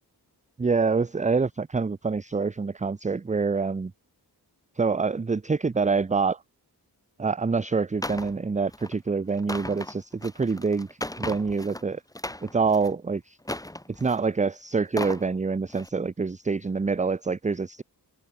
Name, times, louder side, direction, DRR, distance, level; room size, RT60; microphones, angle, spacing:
voice 1, 0.6-3.9 4.8-6.4 7.2-10.9 11.2-12.0 12.4-13.4 13.9-17.8, right 4 dB, 20° right, 0.5 m, -26 dB
sound 1, 8.0-8.3 8.7-8.9 9.3-11.8 12.1-12.9 13.4-14.3 14.8-15.2 15.7-15.9, left 1 dB, 10° left, 1.1 m, -36 dB
open air
wide cardioid pair, 85°, 40 cm